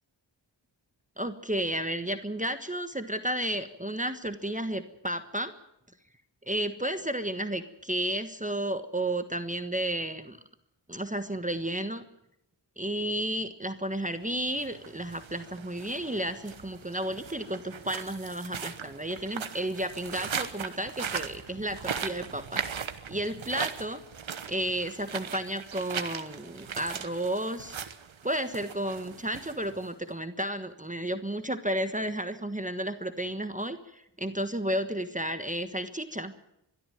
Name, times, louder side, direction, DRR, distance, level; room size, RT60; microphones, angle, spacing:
voice 1, 1.2-5.5 6.5-10.4 10.9-12.0 12.8-24.0 24.5-27.8 28.2-36.3, right 1 dB, 15° right, 9 dB, 1.3 m, -32 dB
sound 1, 14.4-30.1, right 7 dB, 85° right, 1.2 m, -39 dB
22.5 x 12.5 x 9.3 m, 0.82 s
cardioid pair, 40°, 46 cm